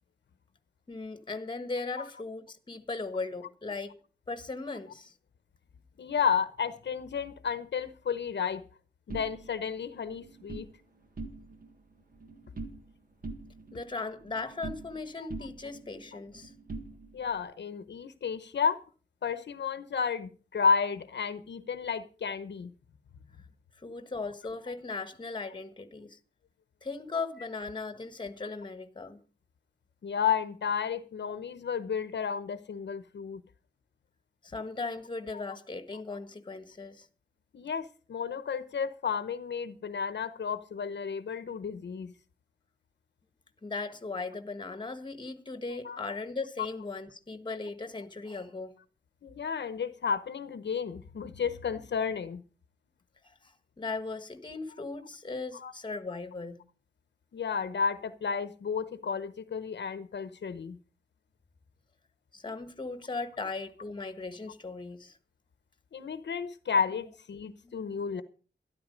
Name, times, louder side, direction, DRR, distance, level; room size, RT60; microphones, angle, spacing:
voice 1, 0.9-3.9 4.3-5.1 13.7-16.5 23.8-26.2 26.8-29.2 34.4-37.1 43.6-48.7 53.2-56.6 62.3-65.2 67.6-68.2, left 3 dB, 25° left, 1.4 m, -38 dB
voice 2, 6.0-8.6 9.1-10.7 17.1-18.8 19.2-22.7 30.0-33.4 37.5-42.1 45.8-46.0 49.2-52.4 55.5-55.7 57.3-60.8 65.9-68.2, left 6 dB, 75° left, 0.9 m, -32 dB
sound 1, 9.1-10.7 11.1-11.7 12.0-12.9 13.2-15.0 15.3-17.4, right 3 dB, 50° right, 1.7 m, -43 dB
13.0 x 11.5 x 5.2 m
wide cardioid pair, 145°, 18 cm